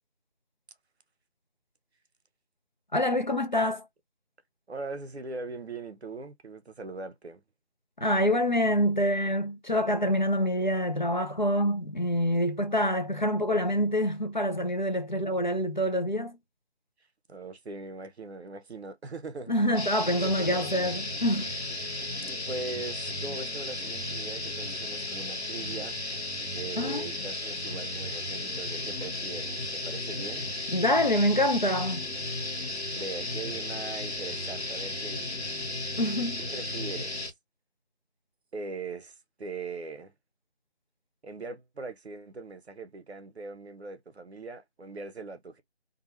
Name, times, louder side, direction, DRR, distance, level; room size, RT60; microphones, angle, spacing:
voice 1, 2.9-3.8 8.0-16.4 19.5-21.5 26.8-27.0 30.7-32.1 36.0-36.4, equal, 45° left, 0.6 m, -26 dB
voice 2, 4.7-7.4 17.3-19.5 20.0-20.9 22.3-26.0 26.5-30.5 32.9-35.5 36.4-37.3 38.5-40.1 41.2-45.6, right 3 dB, 75° right, 0.8 m, -40 dB
sound 1, 19.7-37.3, left 2 dB, 85° left, 1.3 m, -34 dB
2.6 x 2.3 x 3.0 m
figure-of-eight pair, 180°, 32 cm